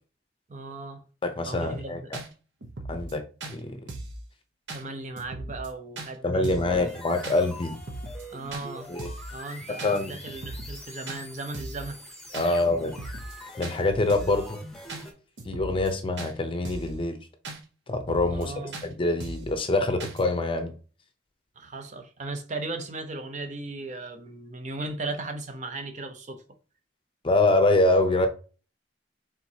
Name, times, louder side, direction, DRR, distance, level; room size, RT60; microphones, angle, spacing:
voice 1, 0.5-1.0 1.5-2.0 4.7-6.8 8.3-8.9 9.3-12.0 12.4-12.6 18.3-18.8 21.6-26.4, right 2 dB, 40° right, 0.6 m, -37 dB
voice 2, 1.2-2.2 2.9-3.2 3.5-3.8 6.2-7.7 8.9-9.1 9.8-10.2 12.3-12.9 13.6-14.6 15.4-17.2 17.9-18.5 18.8-20.7 27.2-28.3, left 2 dB, 30° left, 0.6 m, -25 dB
sound 1, 1.6-1.7 2.1-2.3 2.6-3.1 3.4-3.6 3.9-4.2 4.7-4.8 5.2-5.7 6.0-6.1 6.4-6.7 7.2-7.4 7.7-8.2 8.5-8.7 9.0-9.3 9.8-10.0 10.3-10.8 11.1-11.2 11.5-11.9 12.3-12.5 12.8-13.4 13.6-13.8 14.1-14.4 14.9-15.0 15.4-15.9 16.2-16.3 16.7-17.0 17.4-17.6 17.9-18.5 18.7-18.9 19.2-19.5 20.0-20.2, right 2 dB, 75° right, 0.8 m, -38 dB
sound 2, 6.6-15.1, left 1 dB, ahead, 0.9 m, -44 dB
4.4 x 3.7 x 2.7 m
head